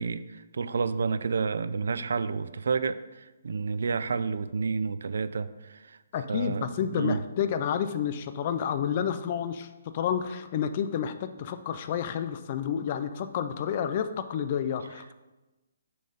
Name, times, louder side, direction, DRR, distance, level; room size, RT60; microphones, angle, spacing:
voice 1, 0.0-6.0 6.3-7.2, right 5 dB, 65° right, 14 dB, 0.3 m, -30 dB
voice 2, 6.1-9.7 9.9-15.1, left 8 dB, 25° left, 10 dB, 0.3 m, -30 dB
6.6 x 4.4 x 5.0 m, 1.1 s
hypercardioid pair, 175°, 0 cm